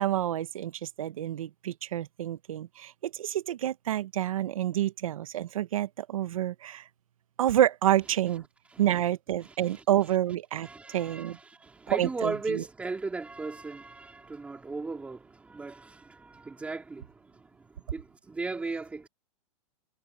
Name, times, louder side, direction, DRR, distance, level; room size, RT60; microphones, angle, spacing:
voice 1, 0.0-6.9 7.4-8.4 8.8-11.4 11.9-12.6, right 12 dB, 75° right, 1.2 m, -28 dB
voice 2, 9.4-9.8 10.6-17.5 17.9-19.1, right 3 dB, 5° right, 2.8 m, -37 dB
hypercardioid pair, 160°, 18 cm